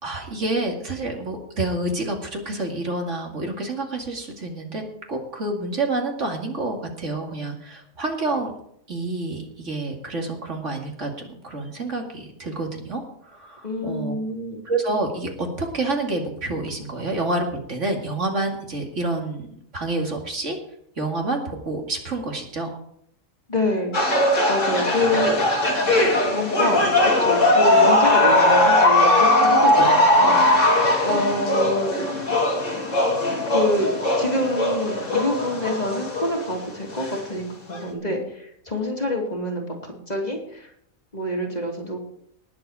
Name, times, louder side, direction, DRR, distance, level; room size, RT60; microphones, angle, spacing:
voice 1, 0.0-4.8 5.1-8.5 8.9-14.2 14.6-19.5 19.7-20.6 21.0-22.8 29.7-29.9, right 2 dB, 55° right, 2 dB, 2.7 m, -28 dB
voice 2, 13.6-14.6 23.5-24.1 24.5-25.4 26.2-30.5 31.0-31.9 33.5-40.7 41.1-42.0, left 1 dB, 30° left, 0 dB, 2.9 m, -26 dB
sound 1, 23.9-36.5 36.9-37.2 37.7-37.8, left 1 dB, 60° left, 3.3 m, -19 dB
19.5 x 7.9 x 4.9 m, 0.69 s
omnidirectional pair, 1.5 m